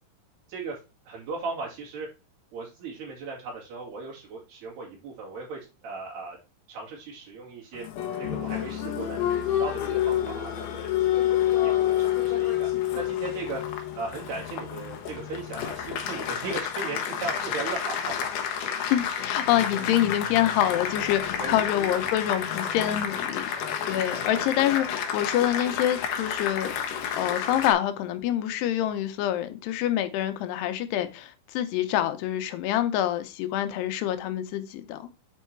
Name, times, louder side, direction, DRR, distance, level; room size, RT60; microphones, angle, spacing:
voice 1, 1.1-2.1 2.5-6.4 6.7-7.8 8.2-12.7 13.0-13.6 13.9-18.1 21.4-21.9 24.1-24.6, right 4 dB, 80° right, 4.6 m, -37 dB
Applause, 7.7-27.7, left 10 dB, 65° left, 2.3 m, -29 dB
voice 2, 18.9-23.5 23.8-26.7 27.1-35.1, left 12 dB, 85° left, 2.9 m, -26 dB
8.3 x 4.6 x 4.4 m
omnidirectional pair, 4.6 m